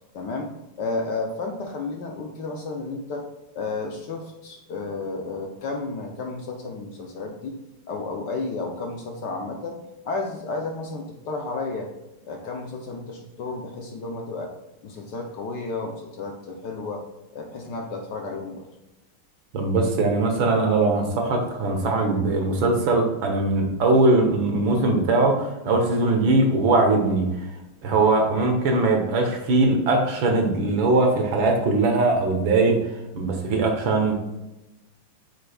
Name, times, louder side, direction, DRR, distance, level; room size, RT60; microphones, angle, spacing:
voice 1, 0.1-3.3 3.5-7.6 7.9-9.8 10.0-11.9 12.2-14.5 14.8-17.0 17.3-18.7, left 3 dB, 65° left, 2 dB, 1.2 m, -32 dB
voice 2, 19.5-27.3 27.8-32.8 33.1-34.1, right 2 dB, 65° right, 3 dB, 1.9 m, -21 dB
8.0 x 6.2 x 2.3 m, 0.98 s
omnidirectional pair, 2.4 m